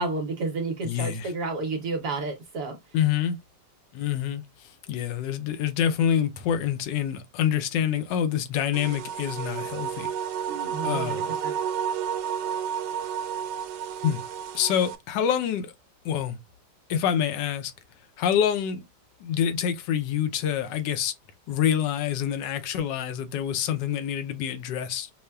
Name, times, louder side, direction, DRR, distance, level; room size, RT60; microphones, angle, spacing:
voice 1, 0.0-2.8 10.5-11.5, right 3 dB, 65° right, 1.1 m, -31 dB
voice 2, 0.8-1.3 2.9-3.4 3.9-10.1 10.8-11.3 14.0-14.2 14.5-15.7 16.0-16.4 16.9-17.7 18.2-18.8 19.2-21.1 21.5-25.1, left 9 dB, 85° left, 1.2 m, -26 dB
sound 1, 8.7-15.0, right 9 dB, 85° right, 1.2 m, -31 dB
5.5 x 2.1 x 2.2 m
omnidirectional pair, 1.9 m